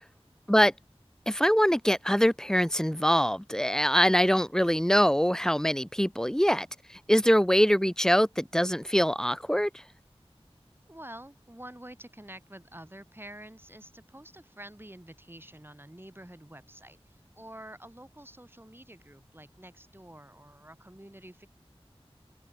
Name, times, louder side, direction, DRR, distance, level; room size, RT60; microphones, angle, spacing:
voice 1, 1.3-6.7 7.1-9.7, equal, 5° left, 0.7 m, -23 dB
voice 2, 10.9-21.5, right 1 dB, 20° right, 5.4 m, -48 dB
open air
wide cardioid pair, 40°, 10 cm